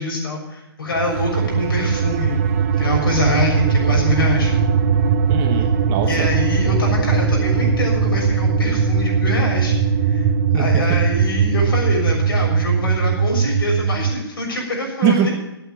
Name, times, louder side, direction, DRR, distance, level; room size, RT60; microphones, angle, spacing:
voice 1, 0.0-2.4 2.8-4.5 6.0-9.7 10.1-10.2 10.5-15.3, left 2 dB, 60° left, -1 dB, 6.6 m, -25 dB
sound 1, 0.9-14.2, right 6 dB, 40° right, 0.9 m, -19 dB
voice 2, 5.3-6.3 10.5-11.0 15.0-15.3, right 7 dB, 25° right, 5 dB, 1.2 m, -21 dB
12.5 x 8.7 x 8.8 m, 0.88 s
figure-of-eight pair, 130°, 13 cm